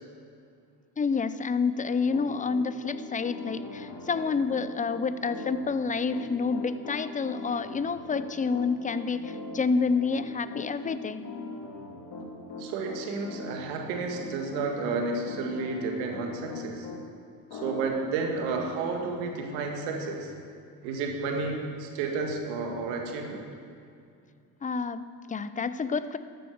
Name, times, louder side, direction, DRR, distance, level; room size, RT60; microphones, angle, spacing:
voice 1, 1.0-11.3 24.6-26.2, left 5 dB, 15° left, 13 dB, 0.5 m, -29 dB
Piano, 1.8-17.0 17.5-17.9, left 3 dB, 50° left, 2.4 m, -40 dB
voice 2, 12.6-16.9 17.5-20.3 20.8-23.5, right 4 dB, 80° right, 2 dB, 1.9 m, -31 dB
13.0 x 7.8 x 6.5 m, 2.4 s
hypercardioid pair, 65°, 50 cm